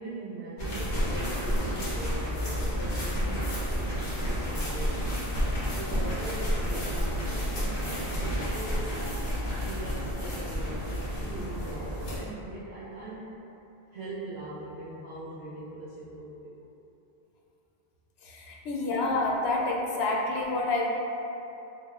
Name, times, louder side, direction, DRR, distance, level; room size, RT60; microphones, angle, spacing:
voice 1, 0.0-5.0 5.7-8.9 9.5-13.3 13.9-16.5, right 2 dB, 70° right, -11 dB, 0.9 m, -41 dB
sound 1, 0.6-12.2, equal, 45° left, 0.9 m, -30 dB
voice 2, 18.2-20.9, left 2 dB, 75° left, -1 dB, 0.8 m, -28 dB
3.7 x 3.1 x 2.4 m, 2.9 s
omnidirectional pair, 1.1 m